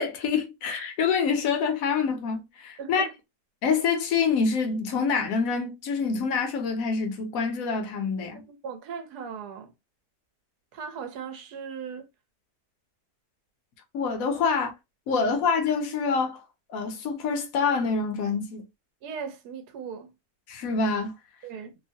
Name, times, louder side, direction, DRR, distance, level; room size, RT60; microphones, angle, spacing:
voice 1, 0.0-3.1 3.6-8.4 13.9-14.7 15.1-16.4 16.7-18.6 20.5-21.1, left 5 dB, 65° left, 1.0 m, -26 dB
voice 2, 2.8-3.1 8.5-9.7 10.7-12.1 15.1-15.3 19.0-20.1 21.4-21.7, right 6 dB, 75° right, 1.1 m, -38 dB
2.9 x 2.1 x 2.6 m
omnidirectional pair, 1.7 m